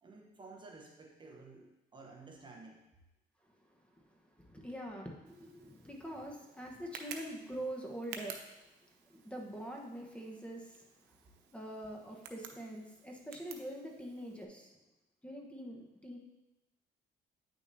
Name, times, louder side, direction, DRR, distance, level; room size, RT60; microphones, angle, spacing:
voice 1, 0.0-2.8, right 3 dB, 30° right, 1 dB, 1.0 m, -53 dB
voice 2, 3.9-8.4 9.0-11.2 11.5-14.8 15.2-16.2, right 1 dB, 5° left, 1 dB, 1.1 m, -44 dB
Tick, 5.3-14.4, right 6 dB, 90° right, 0.8 m, -53 dB
9.3 x 6.4 x 2.7 m, 0.99 s
cardioid pair, 110°, 17 cm